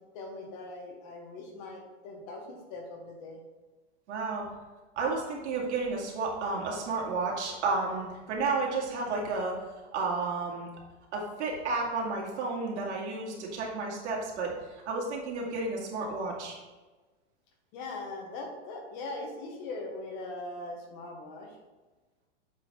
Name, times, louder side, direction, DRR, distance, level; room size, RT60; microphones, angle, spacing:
voice 1, 0.1-3.4 17.7-21.5, left 2 dB, 40° left, 2 dB, 1.3 m, -40 dB
voice 2, 4.1-4.5 5.0-9.6 9.9-10.7 11.1-16.6, right 3 dB, 70° right, -2 dB, 2.2 m, -32 dB
7.4 x 4.2 x 4.1 m, 1.2 s
supercardioid pair, 150°, 36 cm